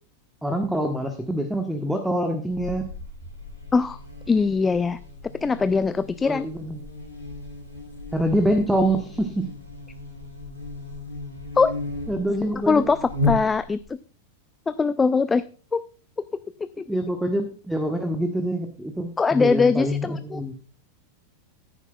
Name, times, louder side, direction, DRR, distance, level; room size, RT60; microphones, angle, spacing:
voice 1, 0.4-2.9 6.2-6.8 8.1-9.5 12.1-12.9 16.9-20.5, right 1 dB, 5° right, 5 dB, 1.3 m, -25 dB
Buzz, 2.5-13.9, left 2 dB, 90° right, 5.8 m, -34 dB
voice 2, 4.3-5.0 5.4-6.5 11.6-11.7 12.7-14.0 14.7-15.4 15.7-15.8 16.8-16.9 19.2-20.4, left 4 dB, 15° left, 14 dB, 0.4 m, -21 dB
15.5 x 9.8 x 2.3 m, 0.38 s
figure-of-eight pair, 90°, 0 cm